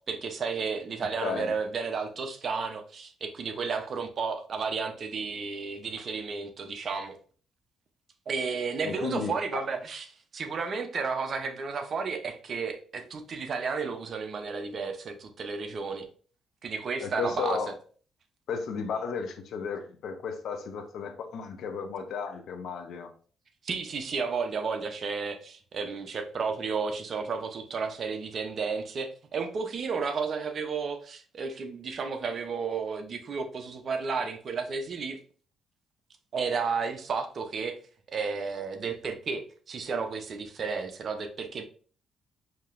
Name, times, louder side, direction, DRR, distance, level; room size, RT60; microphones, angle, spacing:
voice 1, 0.1-7.2 8.3-10.1 10.3-16.1 16.6-17.6 23.6-35.2 36.3-37.8 38.1-41.6, right 5 dB, 50° right, 0.7 m, -32 dB
voice 2, 1.2-1.5 8.8-9.6 17.0-17.7 18.5-23.1, left 5 dB, 70° left, 0.7 m, -34 dB
5.2 x 2.9 x 2.5 m
cardioid pair, 90°, 0 cm